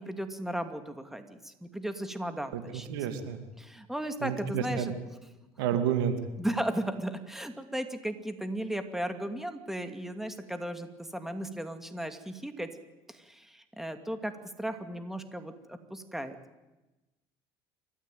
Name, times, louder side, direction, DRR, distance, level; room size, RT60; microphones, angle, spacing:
voice 1, 0.0-2.9 3.6-4.9 6.4-12.7 13.1-14.3 14.6-16.4, right 1 dB, 5° right, 8 dB, 2.5 m, -35 dB
voice 2, 2.9-3.4 4.2-4.9 5.6-6.2, right 8 dB, 90° right, 8 dB, 2.4 m, -29 dB
28.0 x 14.0 x 9.2 m, 1.1 s
supercardioid pair, 85°, 12 cm